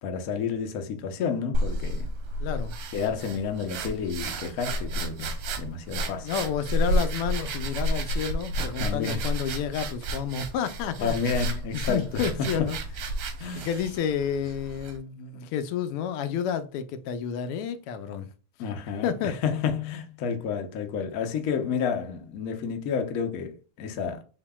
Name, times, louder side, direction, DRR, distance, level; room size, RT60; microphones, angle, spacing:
voice 1, 0.0-2.1 2.9-6.3 8.8-9.2 11.0-12.7 13.4-13.7 18.6-24.2, left 6 dB, 60° left, 0.9 m, -30 dB
sound 1, 1.5-15.0, right 1 dB, 85° right, 1.7 m, -31 dB
voice 2, 2.4-2.8 6.2-11.2 11.7-12.8 13.6-18.3 19.0-19.4, left 8 dB, 85° left, 1.5 m, -30 dB
7.1 x 2.8 x 2.2 m
omnidirectional pair, 2.4 m